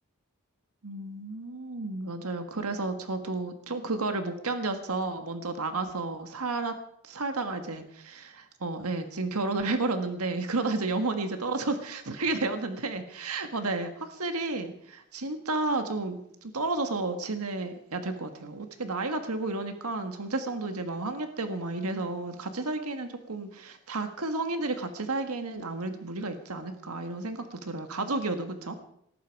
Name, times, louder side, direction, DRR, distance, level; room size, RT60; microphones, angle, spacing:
voice 1, 0.8-6.8 7.0-28.8, right 3 dB, 90° right, 7 dB, 1.6 m, -32 dB
19.0 x 14.0 x 4.7 m, 0.72 s
head